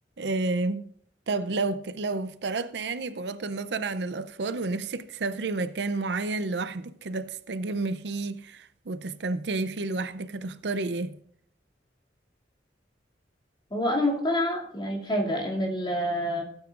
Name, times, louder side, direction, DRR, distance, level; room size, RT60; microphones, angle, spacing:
voice 1, 0.2-0.9 1.3-11.2, right 3 dB, 70° right, 0.6 m, -30 dB
voice 2, 13.7-16.4, left 1 dB, 25° left, 2.6 m, -27 dB
16.5 x 8.9 x 2.5 m
head